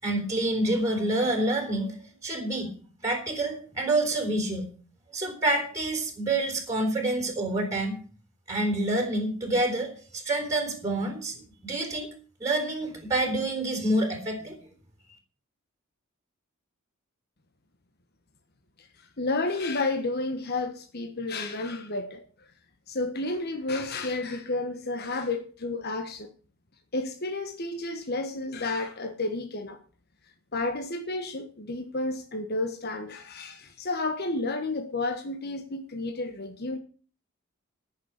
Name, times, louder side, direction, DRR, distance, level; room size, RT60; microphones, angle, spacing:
voice 1, 0.0-2.7 3.0-4.7 5.1-8.0 8.5-12.1 12.4-14.6, right 2 dB, 15° right, 3.9 m, -27 dB
voice 2, 19.2-22.2 22.9-26.3 26.9-29.8 30.5-36.8, left 2 dB, 45° left, 1.3 m, -31 dB
14.5 x 6.8 x 8.2 m
head